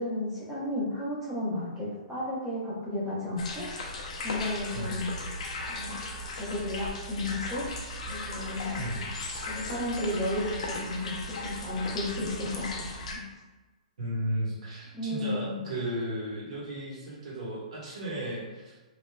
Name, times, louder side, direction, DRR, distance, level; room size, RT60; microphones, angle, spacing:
voice 1, 0.0-3.7 4.2-5.1 5.7-6.0 6.4-7.6 8.1-8.8 9.5-11.2 11.4-12.8 13.1-13.2 14.9-15.7, left 1 dB, 5° right, -8 dB, 0.7 m, -33 dB
sound 1, 3.4-13.2, left 2 dB, 60° left, 0.5 m, -37 dB
voice 2, 4.7-5.0 8.7-9.1 14.0-18.8, right 1 dB, 55° right, -6 dB, 1.3 m, -34 dB
3.2 x 2.7 x 2.2 m, 1.2 s
hypercardioid pair, 170°, 4 cm